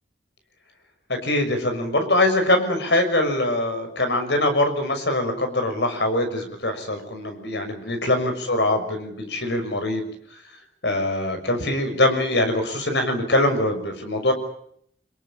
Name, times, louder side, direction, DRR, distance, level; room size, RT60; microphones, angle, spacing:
voice 1, 1.1-10.1 10.8-14.3, left 1 dB, 80° left, 6 dB, 6.3 m, -23 dB
26.5 x 22.0 x 8.6 m, 0.69 s
head